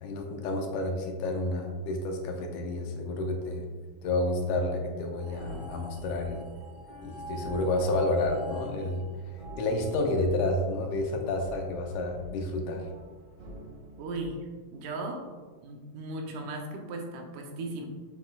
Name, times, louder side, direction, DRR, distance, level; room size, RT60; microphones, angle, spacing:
voice 1, 0.0-3.6 4.0-6.5 7.0-9.0 9.3-12.9, left 2 dB, 80° left, 3 dB, 2.1 m, -30 dB
sound 1, 5.2-10.6, right 2 dB, 25° right, 1.3 m, -47 dB
sound 2, 5.2-14.2, right 1 dB, 60° right, 2.7 m, -48 dB
voice 2, 14.0-15.2 15.6-17.9, right 2 dB, 80° right, 3 dB, 2.2 m, -37 dB
7.7 x 6.8 x 2.3 m, 1.4 s
omnidirectional pair, 3.7 m